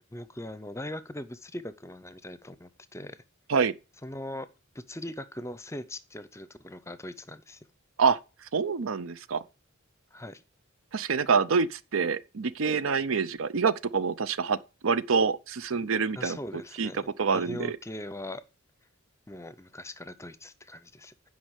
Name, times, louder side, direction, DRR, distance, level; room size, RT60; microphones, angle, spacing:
voice 1, 0.1-3.2 4.0-4.5 4.7-7.6 10.1-10.4 16.2-18.4 19.3-21.1, left 1 dB, 15° left, 0.6 m, -40 dB
voice 2, 8.5-9.4 10.9-14.6 14.8-16.4 16.8-16.9 17.2-17.8, right 5 dB, 70° right, 0.6 m, -26 dB
9.4 x 5.3 x 8.1 m
head